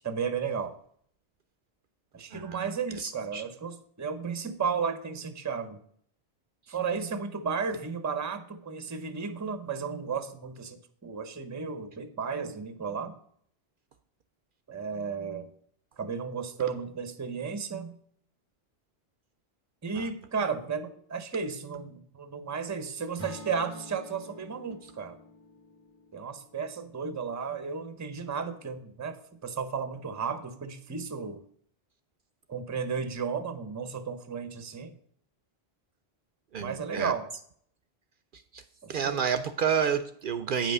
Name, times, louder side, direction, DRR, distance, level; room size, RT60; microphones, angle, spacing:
voice 1, 0.0-0.7 2.1-5.8 6.7-13.2 14.7-15.5 16.0-18.0 19.8-25.2 26.1-31.4 32.5-34.9 36.6-37.3 38.8-39.2, right 6 dB, 20° right, 10 dB, 0.6 m, -34 dB
voice 2, 2.3-2.7 3.0-3.4 20.0-20.1 36.5-37.1 38.5-38.6 38.9-40.7, right 7 dB, 60° right, 10 dB, 0.7 m, -29 dB
Acoustic guitar / Strum, 23.2-27.4, left 1 dB, 15° left, 0.9 m, -48 dB
8.9 x 5.7 x 5.3 m, 0.63 s
omnidirectional pair, 1.0 m